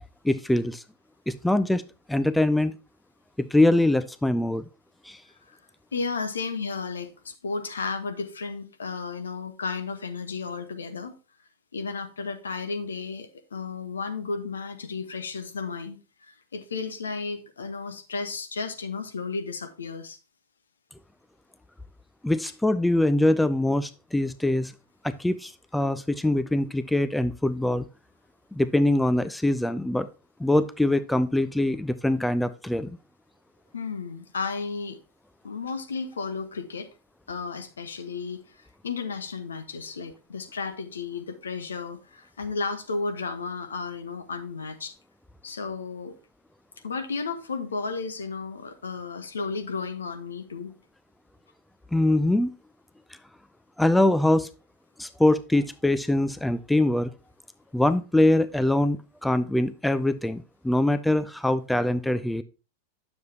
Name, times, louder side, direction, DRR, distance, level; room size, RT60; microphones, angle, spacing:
voice 1, 0.2-0.8 1.3-1.8 2.1-2.8 3.4-4.6 5.1-5.2 22.2-24.7 25.0-27.8 28.5-30.1 30.4-33.0 51.9-52.5 53.8-54.5 55.0-57.1 57.7-62.4, left 1 dB, 5° left, 0.4 m, -23 dB
voice 2, 5.9-11.2 11.7-16.0 16.5-20.2 33.7-35.0 35.4-36.9 37.3-38.4 38.8-44.9 45.4-46.1 46.8-50.7, left 4 dB, 70° left, 1.1 m, -33 dB
9.2 x 7.0 x 2.8 m
figure-of-eight pair, 90°, 0 cm